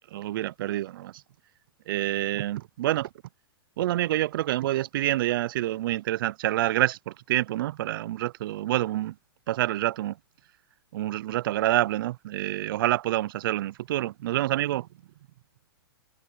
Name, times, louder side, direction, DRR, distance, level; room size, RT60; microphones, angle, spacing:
voice 1, 0.1-1.2 1.9-3.1 3.8-9.2 9.5-10.2 10.9-14.9, right 14 dB, 60° right, 0.5 m, -27 dB
hypercardioid pair, 140°, 13 cm